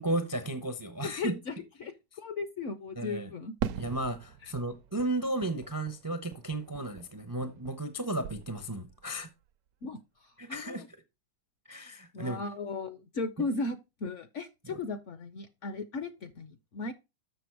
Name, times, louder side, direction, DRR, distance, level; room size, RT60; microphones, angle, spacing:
voice 1, 0.0-1.3 3.0-3.3 3.7-9.3 10.4-10.8 11.7-12.4 14.7-14.8, right 1 dB, 35° right, 0.3 m, -34 dB
voice 2, 1.0-1.5 1.8-3.5 4.4-4.5 9.8-10.9 12.1-16.9, left 3 dB, 60° left, 0.8 m, -37 dB
Fireworks, 3.6-8.0 8.2-9.0, right 8 dB, 70° right, 1.0 m, -41 dB
6.8 x 6.5 x 4.6 m
omnidirectional pair, 1.9 m